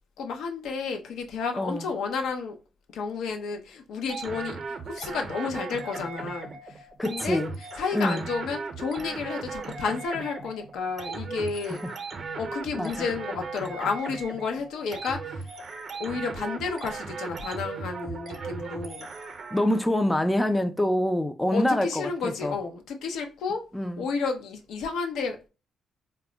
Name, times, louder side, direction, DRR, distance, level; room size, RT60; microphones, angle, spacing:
voice 1, 0.2-2.6 2.9-7.4 7.8-11.8 12.3-15.5 16.0-19.1 21.5-23.7 24.0-25.5, left 5 dB, 80° left, 0.5 m, -31 dB
sound 1, 4.1-19.8, right 4 dB, 50° right, 0.6 m, -37 dB
voice 2, 7.0-7.5 7.9-8.3 12.8-12.9 19.5-22.5 23.7-24.1, left 1 dB, 10° left, 0.3 m, -25 dB
2.1 x 2.1 x 3.7 m
cardioid pair, 90°, 0 cm